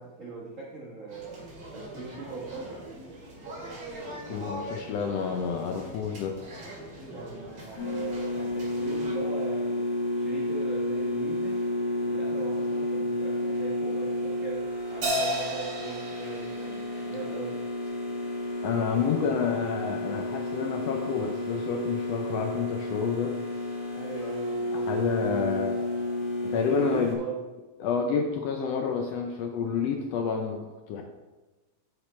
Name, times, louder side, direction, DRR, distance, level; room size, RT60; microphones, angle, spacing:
voice 1, 0.0-1.4 1.7-2.8 7.1-11.6 12.0-14.6 14.9-17.6 23.9-24.9 26.4-27.4 30.9-31.0, right 4 dB, 65° right, -4 dB, 0.7 m, -40 dB
sound 1, 1.1-9.1, right 1 dB, 45° right, 2.8 m, -42 dB
voice 2, 4.3-6.4 18.6-23.4 24.7-25.9 26.4-27.2 27.8-31.0, left 6 dB, 75° left, 3 dB, 1.5 m, -29 dB
sound 2, 7.8-27.1, left 1 dB, 50° left, 3.9 m, -31 dB
Crash cymbal, 15.0-17.7, equal, 85° right, 4.2 m, -32 dB
8.5 x 8.1 x 3.2 m, 1.2 s
omnidirectional pair, 3.5 m